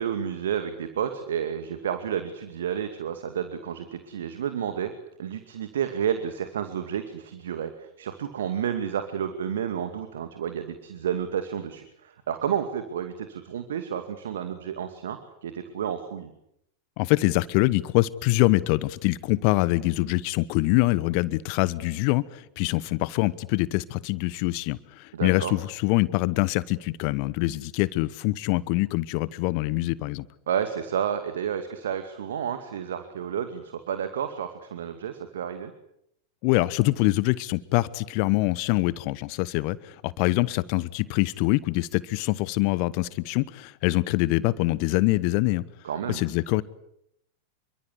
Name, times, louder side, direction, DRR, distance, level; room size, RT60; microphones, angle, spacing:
voice 1, 0.0-4.9 5.2-16.3 25.1-25.5 30.5-35.7 45.8-46.2, right 8 dB, 60° right, 9 dB, 2.4 m, -31 dB
voice 2, 17.0-30.3 36.4-45.6 46.1-46.6, left 20 dB, 45° left, 19 dB, 1.1 m, -24 dB
27.5 x 24.0 x 8.3 m, 0.76 s
figure-of-eight pair, 90°, 0 cm